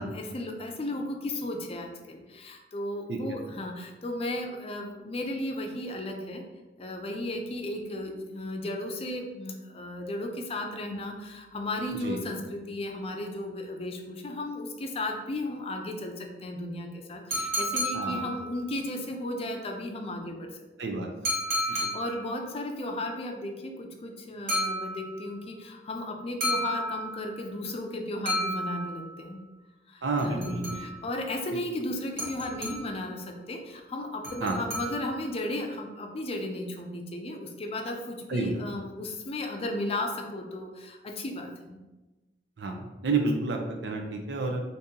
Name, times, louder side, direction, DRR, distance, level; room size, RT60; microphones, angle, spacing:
voice 1, 0.0-6.4 6.8-20.5 20.8-21.0 21.6-29.4 29.9-41.8, left 1 dB, 35° left, 3 dB, 0.4 m, -35 dB
sound 1, 17.3-18.8 21.2-22.4 24.5-25.4 26.4-27.4 28.3-29.3 30.2-31.1 32.2-33.1 34.2-35.3, equal, 55° right, 1.0 m, -32 dB
voice 2, 20.8-21.3 21.8-21.9 30.0-30.6 34.4-34.6 38.3-38.5 42.6-42.8 43.0-44.6, right 3 dB, 80° right, 3 dB, 0.6 m, -29 dB
2.8 x 2.7 x 3.6 m, 1.1 s
head